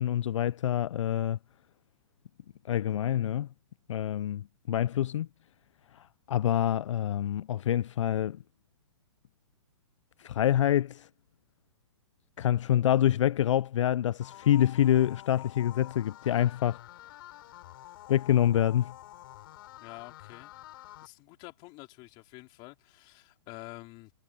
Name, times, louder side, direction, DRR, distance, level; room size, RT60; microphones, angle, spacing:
voice 1, 0.0-1.4 2.7-3.5 3.9-5.3 5.9-8.4 10.2-11.1 12.4-16.8 18.1-18.9, left 11 dB, 75° left, 0.4 m, -26 dB
sound 1, 14.2-21.1, left 15 dB, 50° left, 5.7 m, -48 dB
voice 2, 19.8-20.5 21.0-24.1, left 24 dB, 30° left, 4.1 m, -48 dB
hypercardioid pair, 155°, 16 cm